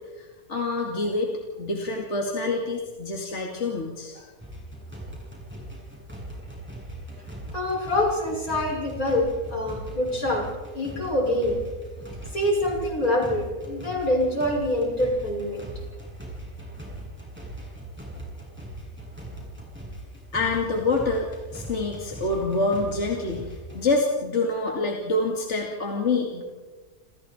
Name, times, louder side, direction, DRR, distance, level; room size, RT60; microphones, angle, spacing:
voice 1, 0.2-1.3 1.6-4.3 20.3-26.4, left 3 dB, 50° left, 0 dB, 2.8 m, -26 dB
sound 1, 4.4-23.8, right 1 dB, 5° right, 7.4 m, -40 dB
voice 2, 7.5-10.5 10.7-11.6 12.3-15.6, left 1 dB, 75° left, -1 dB, 6.7 m, -25 dB
29.0 x 28.5 x 4.4 m, 1.3 s
omnidirectional pair, 1.5 m